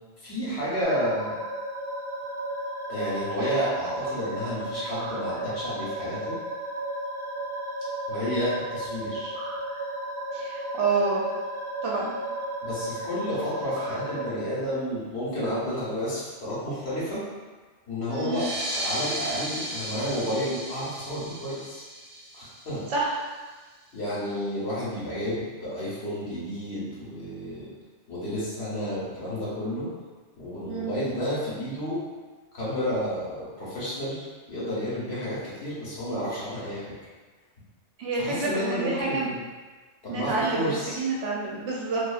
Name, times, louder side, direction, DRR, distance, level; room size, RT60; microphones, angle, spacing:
voice 1, 0.2-1.3 2.9-6.3 8.1-9.4 12.6-17.2 17.9-18.4 18.8-21.8 22.3-22.8 23.9-27.7 28.1-29.9 30.4-32.0 32.5-36.9 38.2-39.4 40.0-41.0, equal, 65° left, -9 dB, 1.2 m, -31 dB
sound 1, 0.8-14.3, right 1 dB, 35° left, 0.5 m, -34 dB
voice 2, 10.3-11.2 11.8-12.1 18.1-18.4 22.9-23.1 30.7-30.9 38.0-39.3 40.1-42.0, right 3 dB, 75° right, -4 dB, 0.9 m, -28 dB
sound 2, 18.2-23.3, right 1 dB, 40° right, 0.6 m, -35 dB
2.7 x 2.5 x 2.3 m, 1.3 s
omnidirectional pair, 1.2 m